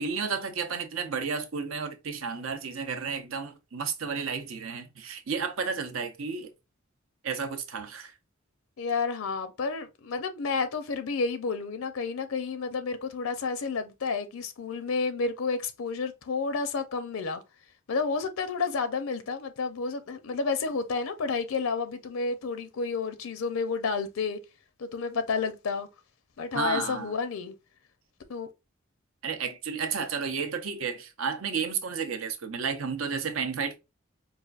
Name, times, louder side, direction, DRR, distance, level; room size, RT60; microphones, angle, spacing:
voice 1, 0.0-6.5 7.2-8.1 26.5-27.1 29.2-33.8, right 5 dB, 70° right, 0.7 m, -32 dB
voice 2, 8.8-17.4 17.9-24.4 24.8-25.9 26.4-27.5 28.3-28.5, left 4 dB, 75° left, 0.5 m, -30 dB
4.8 x 2.4 x 2.4 m
head